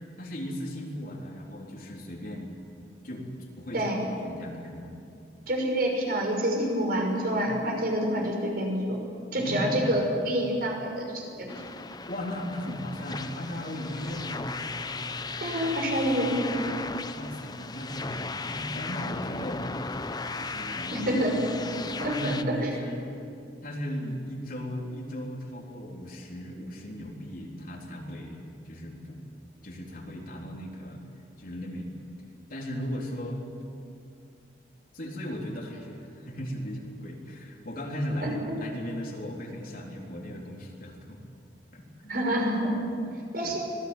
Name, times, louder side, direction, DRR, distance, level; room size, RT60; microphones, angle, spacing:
voice 1, 0.2-2.5 3.0-3.3 3.6-4.9 9.3-9.9 12.1-14.6 17.1-21.0 22.0-23.2 23.6-29.2 29.6-31.0 31.4-31.9 32.5-33.4 34.9-41.2 41.7-42.1 42.8-43.0 43.4-43.6, equal, 50° left, 0 dB, 3.9 m, -37 dB
voice 2, 5.5-9.0 9.3-11.6 15.4-16.5 20.9-21.4 22.0-22.7 38.2-38.6 42.1-42.7 43.3-43.6, equal, 55° right, 1 dB, 5.8 m, -27 dB
sound 1, 11.5-22.4, left 3 dB, 20° left, 0.8 m, -36 dB
25.5 x 19.5 x 9.4 m, 2.5 s
head